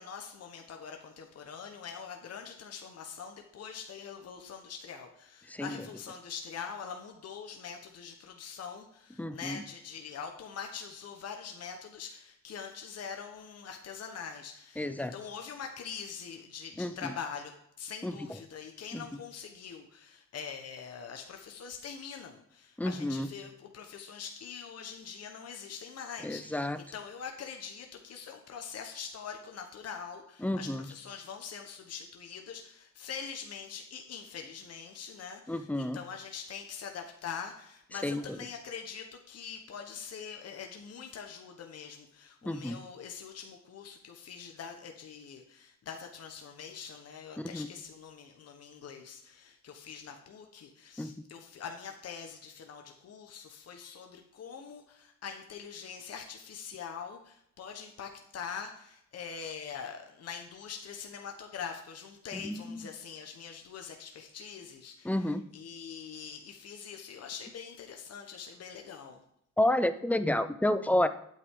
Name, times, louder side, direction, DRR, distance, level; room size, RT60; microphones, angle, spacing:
voice 1, 0.0-17.5 17.8-69.2, left 6 dB, 55° left, 4 dB, 1.3 m, -44 dB
voice 2, 9.2-9.6 14.8-15.1 16.8-17.1 18.0-18.1 18.9-19.0 22.8-23.3 26.2-26.8 30.4-30.9 35.5-36.0 38.0-38.2 42.4-42.8 47.4-47.7 51.0-51.1 62.3-62.9 65.0-65.4 69.6-71.1, left 1 dB, 5° left, 11 dB, 0.6 m, -30 dB
9.3 x 8.1 x 3.8 m, 0.72 s
cardioid pair, 90°, 30 cm